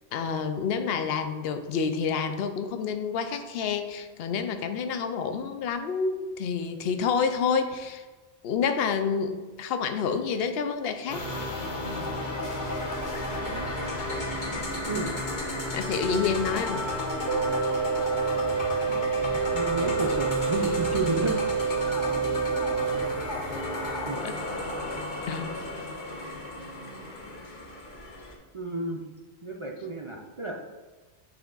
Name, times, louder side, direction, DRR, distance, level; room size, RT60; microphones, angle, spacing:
voice 1, 0.1-8.1 8.4-11.2 15.7-16.8 23.8-24.4 25.3-25.5, left 6 dB, 65° left, 8 dB, 0.8 m, -28 dB
sound 1, 11.1-28.3, left 1 dB, 45° left, 1.1 m, -32 dB
voice 2, 13.3-14.0 14.4-15.2 18.8-19.0 19.3-21.5 22.9-23.1 24.0-24.3 28.5-29.0 29.4-30.6, right 2 dB, 40° right, 0 dB, 0.4 m, -33 dB
sound 2, 17.3-23.3, right 7 dB, 80° right, 0.9 m, -28 dB
8.8 x 3.6 x 3.8 m, 1.3 s
omnidirectional pair, 1.2 m